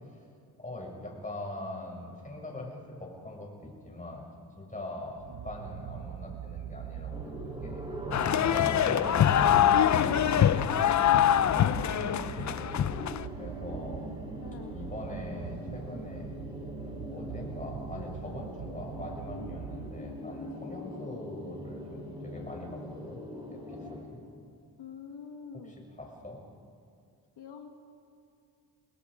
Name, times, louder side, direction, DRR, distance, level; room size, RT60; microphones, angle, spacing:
voice 1, 0.6-4.2 4.6-7.8 8.3-10.3 12.8-13.0 13.3-14.3 14.7-16.3 17.1-23.2 23.5-24.2 26.0-26.4, left 1 dB, 20° left, -1 dB, 6.5 m, -42 dB
sound 1, 5.2-20.5, right 10 dB, 70° right, 0.8 m, -43 dB
sound 2, 7.1-24.0, equal, 10° right, 7.0 m, -41 dB
sound 3, 8.1-13.2, left 10 dB, 45° left, 0.6 m, -24 dB
voice 2, 14.4-14.8 24.8-25.7 27.4-27.7, left 7 dB, 85° left, 4 dB, 1.7 m, -45 dB
29.0 x 20.5 x 5.0 m, 2.4 s
cardioid pair, 90°, 40 cm